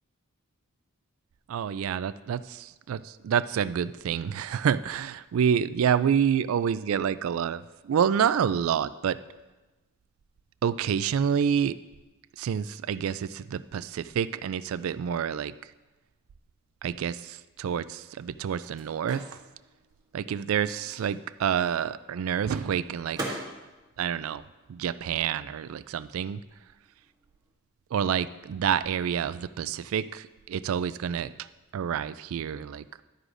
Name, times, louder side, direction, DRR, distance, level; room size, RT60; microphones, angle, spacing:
voice 1, 1.5-9.2 10.6-11.8 12.4-15.5 16.8-19.2 20.1-23.4 24.0-24.4 24.7-26.4 27.9-31.3 31.7-32.8, right 8 dB, 85° right, 16 dB, 0.3 m, -28 dB
Microwave oven, 18.2-25.4 25.6-27.5, right 1 dB, 20° right, 1.8 m, -44 dB
11.5 x 9.6 x 2.6 m, 1.1 s
head